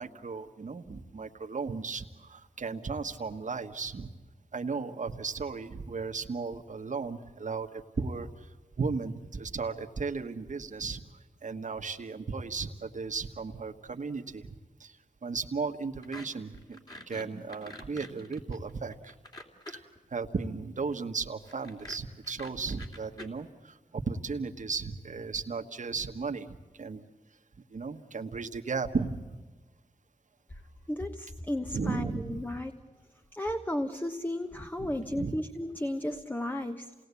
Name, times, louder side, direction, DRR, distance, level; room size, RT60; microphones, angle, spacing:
voice 1, 0.0-4.1 4.5-8.5 8.8-11.0 11.4-16.8 17.1-19.1 19.7-27.0 27.7-29.3 31.7-32.4 34.8-35.4, right 4 dB, 60° right, 5 dB, 1.5 m, -35 dB
sound 1, 16.0-16.3 16.5-20.0 21.5-23.3, left 1 dB, 30° left, 3.1 m, -46 dB
voice 2, 30.9-32.7 33.3-36.9, left 1 dB, 15° left, 6 dB, 1.1 m, -34 dB
28.5 x 19.0 x 8.4 m, 1.3 s
wide cardioid pair, 70°, 14 cm